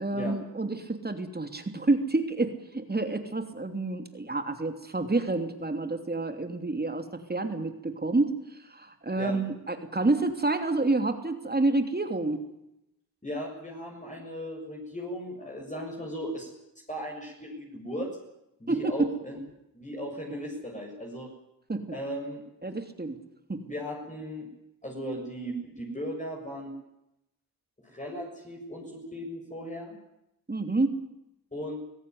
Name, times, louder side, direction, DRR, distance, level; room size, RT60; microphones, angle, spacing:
voice 1, 0.0-12.4 18.7-18.9 21.7-21.9 22.6-23.2 23.5-23.7 30.5-31.0, right 2 dB, 25° right, 7 dB, 3.1 m, -29 dB
voice 2, 13.2-16.5 16.9-18.1 18.6-19.4 19.7-21.3 21.9-22.4 23.7-24.5 24.8-26.7 27.8-30.0 31.5-31.8, equal, 20° left, -1 dB, 7.2 m, -37 dB
24.0 x 16.5 x 9.6 m, 0.84 s
cardioid pair, 75°, 37 cm